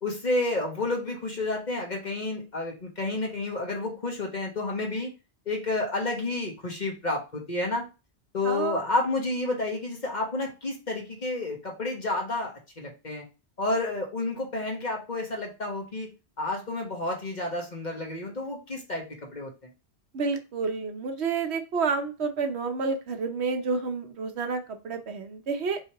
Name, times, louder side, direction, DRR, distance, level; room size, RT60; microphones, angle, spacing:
voice 1, 0.0-5.1 5.5-7.8 8.3-13.2 13.6-16.1 16.4-19.5, left 2 dB, 40° left, 0 dB, 1.4 m, -30 dB
voice 2, 8.4-8.8 20.1-25.8, right 4 dB, 75° right, 6 dB, 1.1 m, -29 dB
5.1 x 3.4 x 2.9 m, 0.29 s
omnidirectional pair, 1.1 m